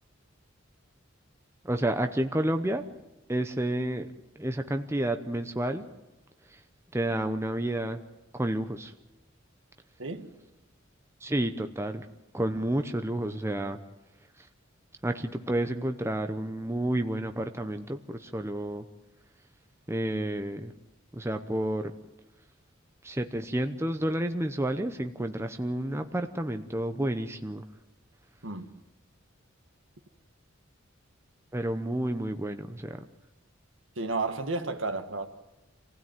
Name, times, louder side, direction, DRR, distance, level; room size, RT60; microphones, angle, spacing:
voice 1, 1.6-2.8 3.3-4.1 4.4-5.9 6.9-8.0 8.3-8.9 11.2-12.1 12.3-13.8 15.0-18.8 19.9-20.7 21.1-21.9 23.0-27.6 31.5-33.0, right 1 dB, 15° right, 0.8 m, -30 dB
voice 2, 10.0-10.3 28.4-28.7 33.9-35.3, right 3 dB, 70° right, 1.8 m, -32 dB
26.5 x 16.0 x 9.1 m
head